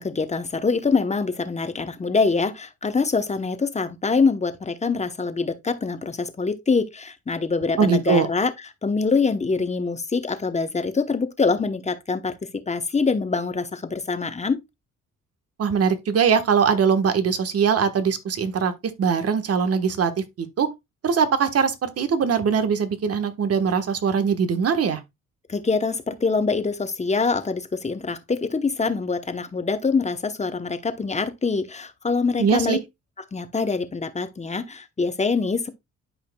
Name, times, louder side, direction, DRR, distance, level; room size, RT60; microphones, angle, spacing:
voice 1, 0.0-8.5 8.8-12.3 12.7-14.6 25.5-32.8 33.3-35.7, left 4 dB, 20° left, 0.9 m, -24 dB
voice 2, 7.8-8.3 15.6-18.7 19.0-20.1 20.4-20.7 21.0-25.0 32.4-32.8, right 6 dB, 50° right, 1.3 m, -21 dB
11.5 x 4.9 x 2.3 m
cardioid pair, 90°, 30 cm